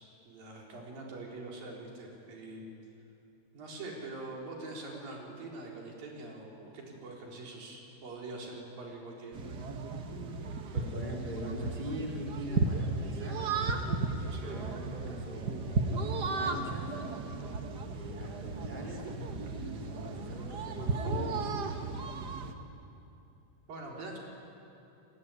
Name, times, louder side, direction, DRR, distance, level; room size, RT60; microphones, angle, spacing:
voice 1, 0.3-2.7 3.5-9.4 14.3-14.6 23.7-24.2, right 2 dB, 85° right, -1 dB, 5.6 m, -44 dB
sound 1, 9.3-22.5, right 3 dB, 60° right, 1.0 m, -35 dB
voice 2, 10.4-13.5 14.2-16.0 16.3-17.0 17.9-21.5, equal, 15° right, -2 dB, 4.1 m, -42 dB
29.0 x 19.5 x 9.8 m, 2.8 s
omnidirectional pair, 4.0 m